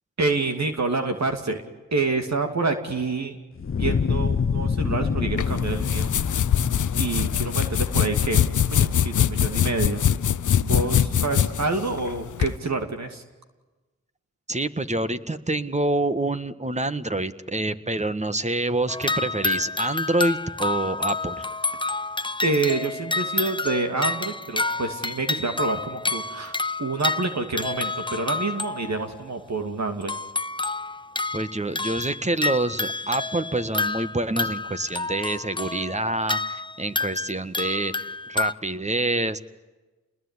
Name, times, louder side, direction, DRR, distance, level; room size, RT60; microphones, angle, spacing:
voice 1, 0.2-1.6 1.9-3.4 3.7-6.1 7.0-10.0 10.6-13.2 22.4-30.1, right 3 dB, 60° right, 5 dB, 2.7 m, -27 dB
Fire, 3.6-8.7, left 6 dB, 40° left, 0.9 m, -27 dB
sound 1, 5.4-12.5, left 9 dB, 75° left, 0.8 m, -23 dB
voice 2, 14.5-21.4 31.3-39.4, right 2 dB, 20° right, 12 dB, 1.7 m, -27 dB
sound 2, 18.9-29.1 30.0-38.5, left 3 dB, 15° left, 0.9 m, -29 dB
28.0 x 20.5 x 9.8 m, 1.2 s
cardioid pair, 45°, 31 cm